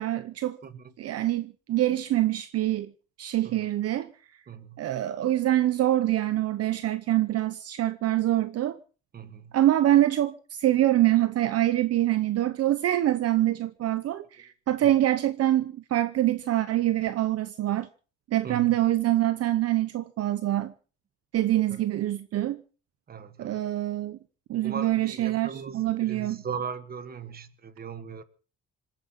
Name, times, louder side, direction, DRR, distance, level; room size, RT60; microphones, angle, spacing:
voice 1, 0.0-0.6 1.0-2.9 3.2-4.1 4.8-8.8 9.5-17.9 18.3-20.7 21.3-22.6 23.4-24.2 24.5-26.4, right 13 dB, 55° right, 0.9 m, -25 dB
voice 2, 0.6-0.9 3.4-3.6 4.5-4.8 9.1-9.5 14.8-14.9 18.4-18.8 21.7-21.8 23.1-23.6 24.6-28.2, right 6 dB, 30° right, 1.4 m, -38 dB
26.0 x 9.2 x 5.8 m
cardioid pair, 155°, 30 cm